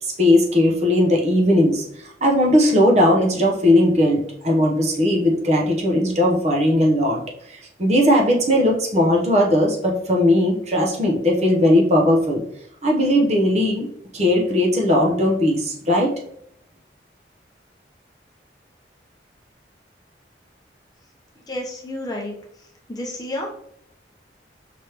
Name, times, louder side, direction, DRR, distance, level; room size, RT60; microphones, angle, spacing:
voice 1, 0.0-4.2 4.4-7.2 7.5-12.4 12.8-13.9 14.1-16.1, left 1 dB, 40° right, 0 dB, 0.7 m, -18 dB
voice 2, 21.5-22.4 22.9-23.5, left 1 dB, 20° left, 0 dB, 0.7 m, -30 dB
5.1 x 3.3 x 2.9 m, 0.70 s
head